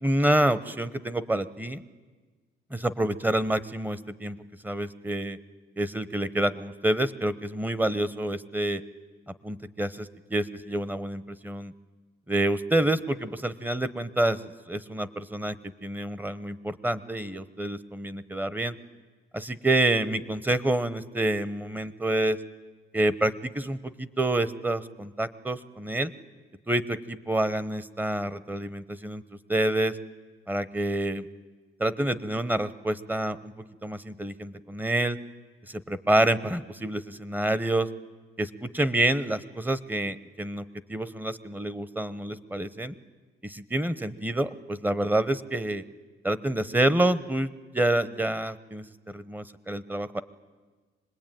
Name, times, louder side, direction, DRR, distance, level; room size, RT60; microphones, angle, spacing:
voice 1, 0.0-1.8 2.7-4.4 4.6-5.4 5.8-8.8 9.4-11.7 12.3-18.7 19.3-22.4 22.9-26.1 26.7-29.2 29.5-30.0 30.5-31.3 31.8-33.5 33.8-35.2 35.7-37.9 38.4-40.6 40.9-42.9 43.4-45.8 46.2-50.2, right 1 dB, 10° right, 15 dB, 0.9 m, -28 dB
25.5 x 20.0 x 9.1 m, 1.4 s
cardioid pair, 90°, 20 cm